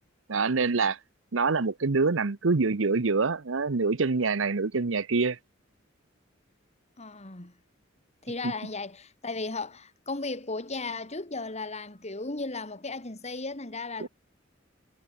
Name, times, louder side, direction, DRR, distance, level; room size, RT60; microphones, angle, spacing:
voice 1, 0.3-1.0 1.3-5.4 8.4-8.5, right 4 dB, 70° right, 0.8 m, -25 dB
voice 2, 7.0-7.5 8.2-14.1, left 3 dB, 35° left, 2.7 m, -35 dB
head